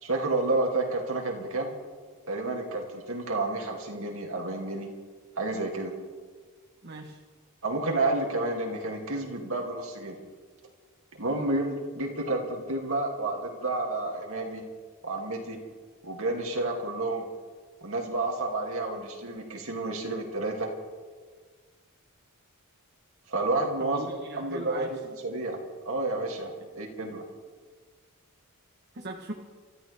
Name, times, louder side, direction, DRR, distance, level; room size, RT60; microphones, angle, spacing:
voice 1, 0.0-1.7 2.3-4.9 5.4-5.9 7.6-10.2 11.2-14.6 15.0-15.6 16.0-17.2 17.8-20.7 23.3-24.1 24.4-25.0 25.2-25.6 25.8-27.2, right 2 dB, 65° right, 0 dB, 2.6 m, -30 dB
voice 2, 6.8-7.2 23.8-25.0 28.9-29.3, right 2 dB, 45° right, 1 dB, 1.2 m, -38 dB
26.5 x 14.0 x 3.5 m, 1.5 s
head